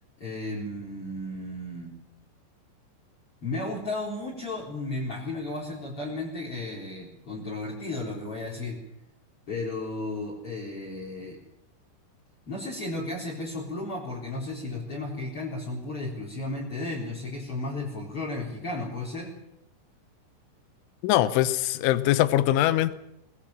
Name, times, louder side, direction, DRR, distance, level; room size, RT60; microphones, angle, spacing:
voice 1, 0.2-2.0 3.4-8.8 9.5-11.4 12.5-19.3, left 2 dB, 30° left, -4 dB, 4.6 m, -34 dB
voice 2, 21.0-22.9, left 14 dB, 85° left, 14 dB, 3.4 m, -22 dB
23.0 x 20.0 x 7.4 m, 0.82 s
omnidirectional pair, 5.4 m